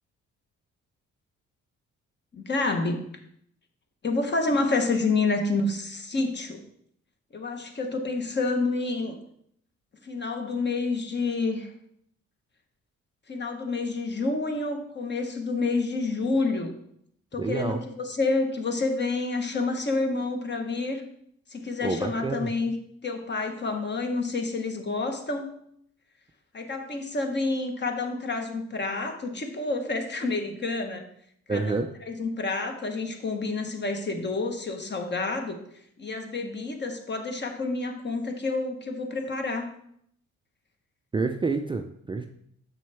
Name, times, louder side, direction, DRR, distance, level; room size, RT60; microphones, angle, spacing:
voice 1, 2.3-3.1 4.0-6.6 7.3-9.1 10.0-11.7 13.3-16.7 17.3-21.0 21.5-22.7 23.0-25.5 26.5-31.1 31.5-31.8 32.0-35.6 36.0-39.7, left 3 dB, 35° left, 4 dB, 1.2 m, -28 dB
voice 2, 17.4-17.8 21.8-22.5 31.5-31.9 41.1-42.3, right 3 dB, 15° right, 5 dB, 0.4 m, -28 dB
6.9 x 6.1 x 3.5 m, 0.70 s
cardioid pair, 90°, 30 cm